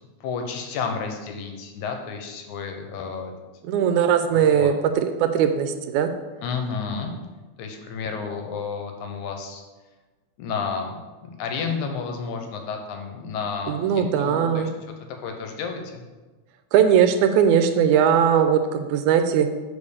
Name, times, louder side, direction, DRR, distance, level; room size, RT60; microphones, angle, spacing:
voice 1, 0.2-3.3 4.3-4.7 6.4-7.2 7.6-9.6 10.4-14.7 15.2-16.0, left 5 dB, 80° left, 4 dB, 2.2 m, -31 dB
voice 2, 3.7-6.1 13.7-14.7 16.7-19.5, right 8 dB, 80° right, 8 dB, 1.9 m, -19 dB
5.4 x 4.8 x 6.4 m, 1.2 s
omnidirectional pair, 3.5 m